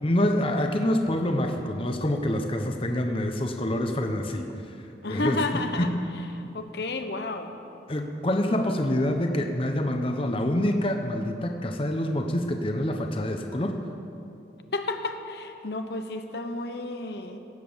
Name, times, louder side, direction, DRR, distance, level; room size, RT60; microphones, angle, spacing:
voice 1, 0.0-4.5 5.1-5.9 7.9-13.8, left 1 dB, 30° left, 5 dB, 0.8 m, -26 dB
voice 2, 5.0-5.9 6.3-7.5 14.7-17.4, left 2 dB, 65° left, 7 dB, 0.8 m, -31 dB
17.0 x 8.4 x 7.1 m, 2.8 s
head